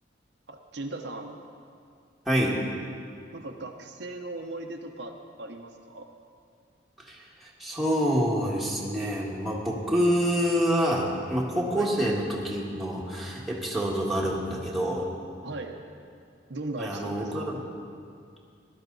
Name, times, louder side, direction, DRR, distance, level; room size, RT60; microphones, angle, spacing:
voice 1, 0.5-1.4 3.3-6.1 11.7-11.9 15.4-15.8 16.5-17.3, right 2 dB, 70° right, 3 dB, 0.8 m, -38 dB
voice 2, 2.2-2.6 7.0-15.1 16.8-17.6, equal, ahead, -5 dB, 1.7 m, -27 dB
16.5 x 12.5 x 4.0 m, 2.4 s
head